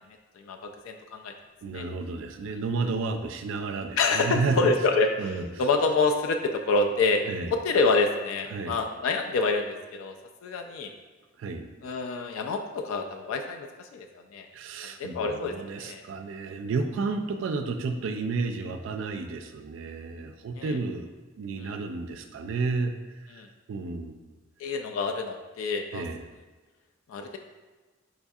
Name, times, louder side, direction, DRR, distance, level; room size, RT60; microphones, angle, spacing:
voice 1, 0.4-1.3 1.7-1.8 4.0-5.3 5.6-7.2 7.5-10.1 10.4-10.9 11.8-14.1 14.3-14.5 15.0-16.0 20.6-20.7 21.6-21.7 23.4-23.5 24.6-26.1 27.1-27.4, left 3 dB, 90° left, 4 dB, 0.3 m, -27 dB
voice 2, 1.6-4.6 5.2-5.5 7.2-7.5 8.5-8.8 11.4-11.7 14.5-21.1 21.4-22.9 23.3-23.4 23.7-24.2 25.9-26.2, right 4 dB, 70° right, 6 dB, 0.3 m, -31 dB
4.8 x 2.6 x 2.3 m, 1.3 s
head